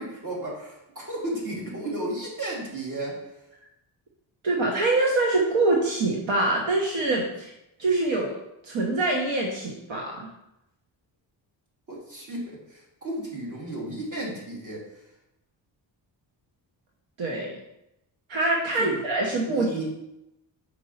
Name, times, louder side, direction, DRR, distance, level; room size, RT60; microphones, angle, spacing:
voice 1, 0.0-3.2 11.9-14.8 18.8-19.0 19.5-19.8, right 1 dB, 40° right, -4 dB, 2.7 m, -34 dB
voice 2, 4.4-7.5 7.8-8.4 8.6-10.3 17.2-17.5 18.3-19.8, right 2 dB, 75° right, -1 dB, 1.2 m, -24 dB
5.2 x 4.7 x 5.6 m, 0.88 s
wide cardioid pair, 130°, 46 cm